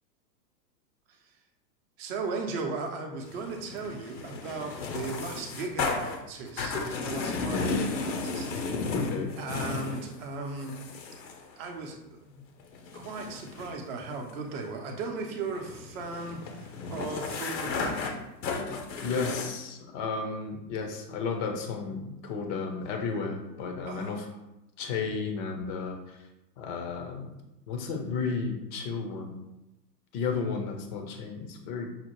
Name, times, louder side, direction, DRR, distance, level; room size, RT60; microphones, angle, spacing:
voice 1, 2.0-8.7 9.4-10.8 11.6-12.4 12.9-18.2 23.9-24.3, right 3 dB, 35° right, 3 dB, 0.7 m, -37 dB
sound 1, 3.2-10.1 10.6-11.5 12.6-19.4, left 4 dB, 80° left, 0.8 m, -34 dB
voice 2, 8.9-9.3 19.0-24.3 24.8-26.2 26.6-27.3 27.7-29.4 30.1-31.9, left 4 dB, 30° left, 3 dB, 0.5 m, -33 dB
5.6 x 2.0 x 3.0 m, 0.94 s
hypercardioid pair, 120°, 50 cm